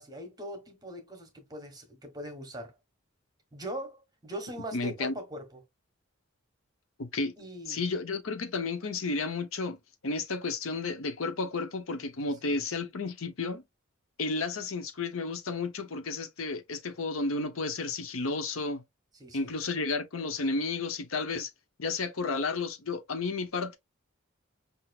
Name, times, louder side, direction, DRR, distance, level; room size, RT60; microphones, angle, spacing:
voice 1, 0.0-2.7 3.5-5.6 7.4-7.8 12.2-12.6 19.2-19.5, right 1 dB, 20° right, 1.3 m, -41 dB
voice 2, 4.7-5.1 7.0-7.3 7.7-9.8 10.0-13.6 14.2-18.8 19.3-21.5 21.8-23.8, left 3 dB, 75° left, 0.8 m, -32 dB
5.8 x 2.7 x 2.3 m
head